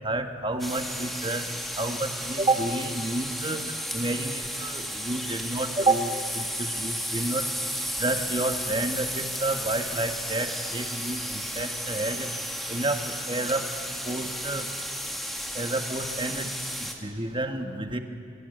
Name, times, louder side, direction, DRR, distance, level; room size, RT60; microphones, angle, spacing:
voice 1, 0.0-1.5 1.8-3.6 3.9-7.5 8.0-12.3 12.7-13.6 14.0-14.7 15.5-16.5 16.8-18.0, right 2 dB, 25° right, 6 dB, 1.5 m, -29 dB
sound 1, 0.6-16.9, equal, ahead, 1.9 m, -33 dB
26.5 x 17.5 x 9.3 m, 2.5 s
head